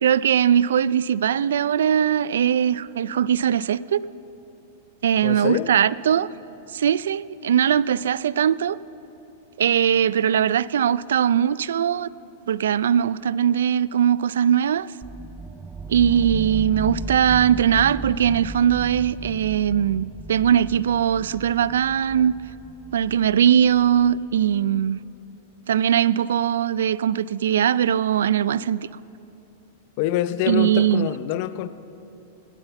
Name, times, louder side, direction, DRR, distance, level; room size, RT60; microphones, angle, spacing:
voice 1, 0.0-4.0 5.0-6.3 6.7-8.8 9.6-12.1 12.5-14.9 15.9-22.4 22.9-25.0 25.7-28.8 30.5-31.1, right 9 dB, 90° right, 20 dB, 0.3 m, -20 dB
voice 2, 5.2-5.7 30.0-31.7, left 13 dB, 50° left, 14 dB, 0.6 m, -25 dB
sound 1, 15.0-24.8, right 2 dB, 10° right, 0.3 m, -36 dB
18.0 x 9.9 x 7.0 m, 2.9 s
supercardioid pair, 150°, 0 cm